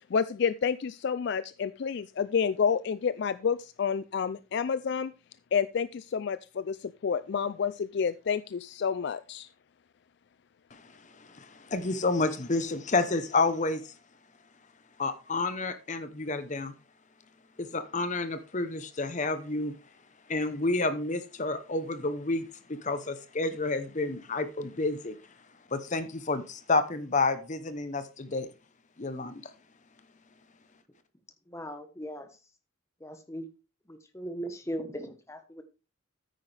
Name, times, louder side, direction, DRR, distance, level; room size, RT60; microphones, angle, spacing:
voice 1, 0.1-5.1 5.5-9.5, left 6 dB, 55° left, 15 dB, 0.4 m, -29 dB
voice 2, 10.7-13.9 15.0-16.7 17.6-19.7 20.3-25.2 25.7-28.5 29.0-29.5, left 3 dB, 35° left, 12 dB, 0.8 m, -30 dB
voice 3, 31.5-32.3 33.0-33.5 33.9-35.6, equal, 15° left, 7 dB, 1.1 m, -38 dB
9.4 x 9.1 x 3.3 m, 0.31 s
head